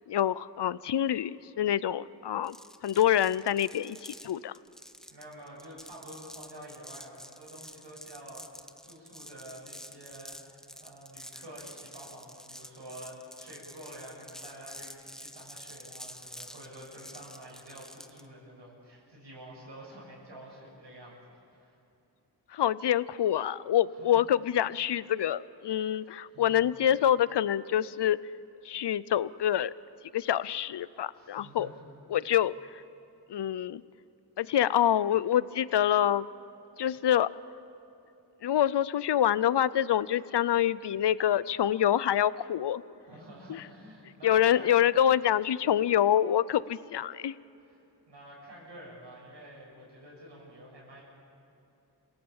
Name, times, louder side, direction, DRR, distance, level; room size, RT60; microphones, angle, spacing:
voice 1, 0.1-2.6 2.8-4.5 22.5-28.2 28.6-29.7 30.1-31.7 32.1-32.8 33.3-33.8 34.4-36.3 36.8-37.3 38.4-42.8 43.5-43.6 44.2-47.4, left 10 dB, 75° left, 19 dB, 0.6 m, -26 dB
sound 1, 2.4-18.3, equal, ahead, 0.9 m, -48 dB
voice 2, 5.1-21.8 24.0-24.2 25.9-26.6 31.1-31.9 43.1-44.8 47.6-47.8 48.1-51.0, right 1 dB, 90° right, -4 dB, 7.1 m, -48 dB
28.0 x 17.0 x 7.2 m, 2.8 s
wide cardioid pair, 80°, 41 cm